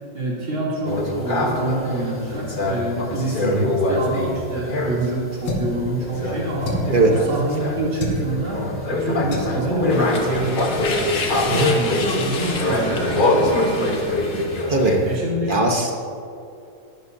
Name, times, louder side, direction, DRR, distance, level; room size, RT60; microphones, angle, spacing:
voice 1, 0.1-3.5 3.9-11.1 11.5-14.5 15.0-15.5, right 1 dB, 75° right, -6 dB, 3.8 m, -26 dB
sound 1, 0.8-5.2 6.0-15.2, left 1 dB, 30° left, 1.0 m, -24 dB
voice 2, 3.4-3.7 6.9-7.1 11.5-11.7 14.7-15.0 15.5-15.9, right 2 dB, 40° right, 1 dB, 0.8 m, -19 dB
sound 2, 5.4-5.8 6.6-7.0 8.0-8.2 9.3-9.6 10.3-10.5 10.8-10.9 11.3-11.5, left 1 dB, 85° left, 2.2 m, -27 dB
sound 3, 9.9-14.8, left 4 dB, 55° left, 1.6 m, -30 dB
19.0 x 11.5 x 2.7 m, 2.5 s
omnidirectional pair, 2.2 m